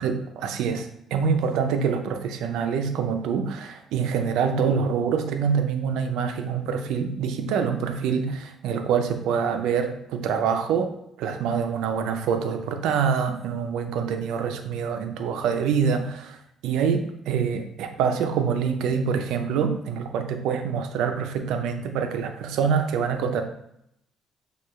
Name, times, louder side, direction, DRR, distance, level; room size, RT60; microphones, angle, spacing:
voice 1, 0.0-10.9 11.2-16.4 16.6-23.4, right 6 dB, 85° right, 6 dB, 0.5 m, -25 dB
6.6 x 2.4 x 3.1 m, 0.76 s
cardioid pair, 100°, 0 cm